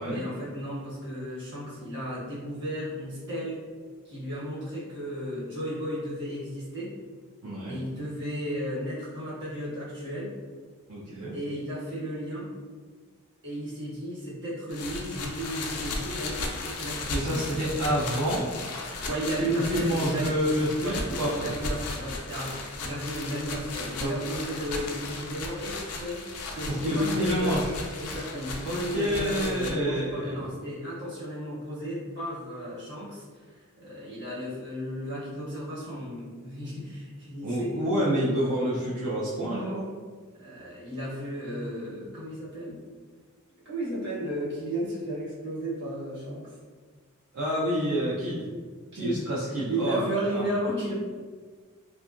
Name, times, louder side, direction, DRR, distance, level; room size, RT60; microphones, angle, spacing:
voice 1, 0.0-3.6 4.0-7.0 7.7-10.3 11.3-12.5 13.4-17.5 19.0-20.4 20.8-21.0 21.3-27.6 28.0-33.2 33.5-37.8 40.4-42.8 43.6-46.5 48.9-50.9, right 1 dB, 55° right, -8 dB, 1.1 m, -34 dB
voice 2, 7.4-7.8 10.9-11.3 17.1-18.5 19.5-21.5 23.9-24.1 26.7-27.7 28.6-30.5 37.4-39.9 47.3-48.4 49.0-50.0 50.3-50.5, equal, 75° right, -8 dB, 0.5 m, -28 dB
sound 1, 14.7-29.7, left 3 dB, 80° left, 0.4 m, -36 dB
2.7 x 2.3 x 2.4 m, 1.5 s
head